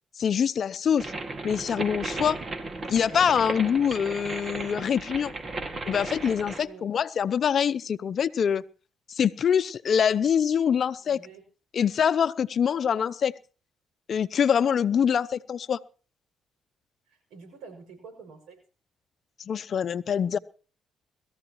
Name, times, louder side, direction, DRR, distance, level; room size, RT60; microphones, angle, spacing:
voice 1, 0.2-1.1 1.4-2.4 2.9-5.3 5.9-8.6 9.1-11.2 11.7-13.3 14.1-15.8 19.5-20.4, left 7 dB, 55° left, 16 dB, 0.7 m, -24 dB
sound 1, 1.0-6.6, right 2 dB, 40° right, 2.2 m, -35 dB
voice 2, 6.6-6.9 11.0-11.4 17.1-18.6, right 5 dB, 90° right, 5 dB, 6.4 m, -47 dB
21.0 x 14.0 x 3.1 m, 0.37 s
cardioid pair, 90°, 0 cm